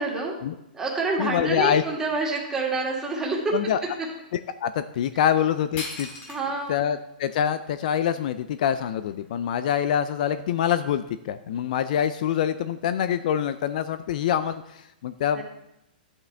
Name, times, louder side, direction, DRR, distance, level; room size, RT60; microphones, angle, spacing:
voice 1, 0.0-0.3 0.7-3.6 6.3-6.8 15.3-15.4, right 3 dB, 10° right, -3 dB, 2.1 m, -27 dB
voice 2, 1.2-1.8 3.5-3.8 4.6-6.1 6.7-15.4, left 9 dB, 50° left, 12 dB, 0.5 m, -25 dB
sound 1, 5.8-6.7 7.3-7.4 8.0-9.3, left 3 dB, 30° left, 2.1 m, -39 dB
11.5 x 8.6 x 3.4 m, 0.85 s
hypercardioid pair, 150°, 5 cm